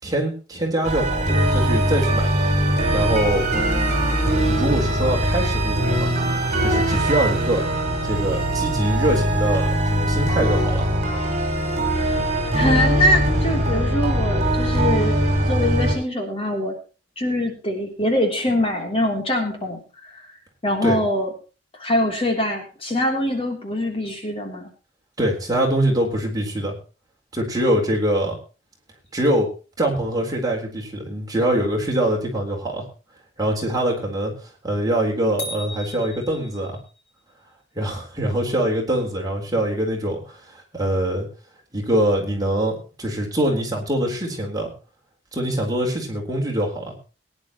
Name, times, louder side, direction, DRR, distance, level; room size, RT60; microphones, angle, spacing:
voice 1, 0.0-2.3 2.9-3.5 4.4-6.3 6.6-7.6 8.0-10.9 20.8-21.0 25.2-26.7 27.3-28.4 29.1-29.5 29.8-32.8 33.4-36.8 37.7-41.3 41.7-44.7 45.3-46.9, right 1 dB, 20° right, 0 dB, 4.0 m, -23 dB
sound 1, 0.8-15.9, right 1 dB, 40° right, 5.4 m, -21 dB
voice 2, 12.5-15.2 15.5-16.8 17.2-20.3 20.6-21.3 21.8-24.7, left 1 dB, 30° left, 2 dB, 3.2 m, -23 dB
sound 2, 35.4-37.0, left 1 dB, 80° left, 5.1 m, -36 dB
22.0 x 10.5 x 3.0 m, 0.34 s
head